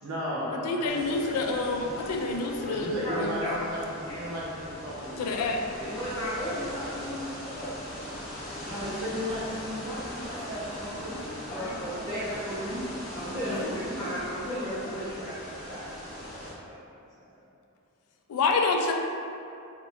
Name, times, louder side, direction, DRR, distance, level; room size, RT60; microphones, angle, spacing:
voice 1, 0.0-1.5 2.6-6.0 8.6-12.9 13.3-14.0, equal, 70° right, -7 dB, 0.7 m, -35 dB
voice 2, 0.6-3.5 5.2-5.6 13.5-13.7 18.3-18.9, left 3 dB, 85° left, 2 dB, 0.3 m, -28 dB
sound 1, 0.8-16.5, equal, 40° left, 0.6 m, -40 dB
voice 3, 5.8-7.8 11.5-12.2 12.5-12.6 13.1-15.9 16.3-16.8, equal, 20° left, -13 dB, 0.9 m, -35 dB
2.8 x 2.1 x 3.4 m, 2.6 s
head